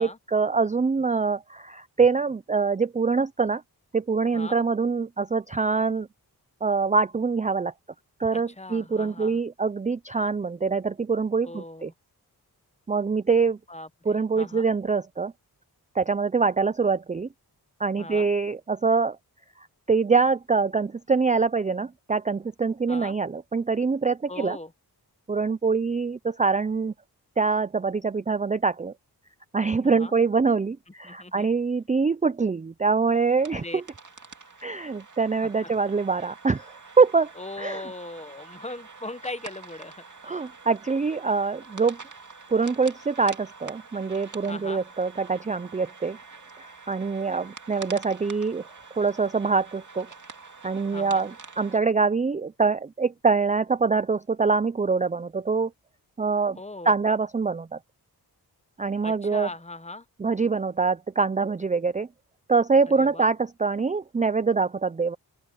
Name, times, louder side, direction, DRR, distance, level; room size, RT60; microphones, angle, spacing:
voice 1, 0.0-3.6 3.9-6.1 6.6-7.7 8.2-11.9 12.9-13.6 14.1-15.3 15.9-17.3 17.8-19.2 19.9-24.6 25.3-26.9 27.4-28.9 29.5-33.8 34.6-37.3 37.6-37.8 40.2-42.0 42.5-46.2 46.6-48.7 49.0-50.1 50.6-55.7 56.2-56.6 56.9-57.8 58.8-59.5 60.2-62.1 62.5-65.2, right 4 dB, 20° right, 0.4 m, -24 dB
voice 2, 8.3-9.4 11.4-11.9 13.7-14.7 18.0-18.3 22.9-23.1 24.3-24.7 29.8-30.2 31.0-31.5 33.5-33.8 35.4-35.7 37.4-40.0 44.5-44.8 50.9-51.3 56.5-56.9 59.0-60.1 62.9-63.3, left 2 dB, 15° left, 1.0 m, -39 dB
sound 1, 33.1-51.8, right 4 dB, 50° right, 2.2 m, -46 dB
open air
wide cardioid pair, 80°, 39 cm